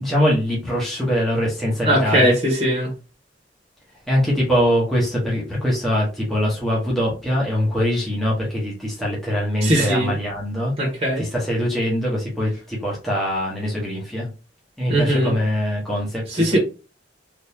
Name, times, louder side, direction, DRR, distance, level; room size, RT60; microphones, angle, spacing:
voice 1, 0.0-2.3 4.1-10.7 11.2-14.3 14.8-16.6, equal, ahead, 1.1 m, -23 dB
voice 2, 1.8-2.9 9.6-10.2 10.8-11.3 14.9-15.3 16.3-16.6, equal, 35° right, 1.2 m, -19 dB
3.6 x 2.6 x 2.8 m
head